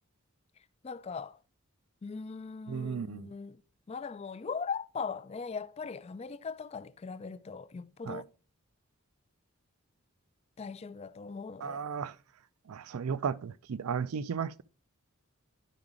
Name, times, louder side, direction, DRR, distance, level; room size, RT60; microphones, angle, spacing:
voice 1, 0.8-1.4 2.0-3.6 3.9-8.2 10.6-11.8, left 5 dB, 30° left, 0.3 m, -39 dB
voice 2, 2.7-3.3 8.1-8.2 11.6-12.1 12.7-14.6, right 6 dB, 85° right, 0.4 m, -34 dB
11.0 x 4.8 x 3.7 m
head